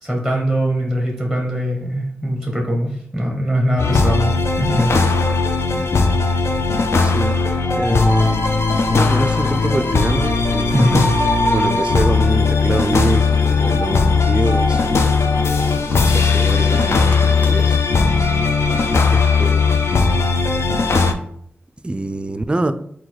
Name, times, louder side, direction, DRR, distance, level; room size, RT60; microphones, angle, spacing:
voice 1, 0.0-5.0 10.7-11.0, equal, 5° left, 0 dB, 1.0 m, -21 dB
sound 1, 3.8-21.1, left 4 dB, 70° left, 0.4 m, -17 dB
voice 2, 7.0-7.4 7.7-8.5 8.9-11.2 11.5-15.1 15.9-17.8 19.1-19.9 21.8-22.7, right 2 dB, 25° right, 10 dB, 0.4 m, -25 dB
sound 2, 7.6-10.1 10.5-15.7, equal, 90° left, 1.1 m, -27 dB
Livestock farm animals working animals, 9.7-17.8, equal, 35° left, 1.1 m, -37 dB
3.9 x 2.2 x 4.5 m, 0.67 s
cardioid pair, 50°, 5 cm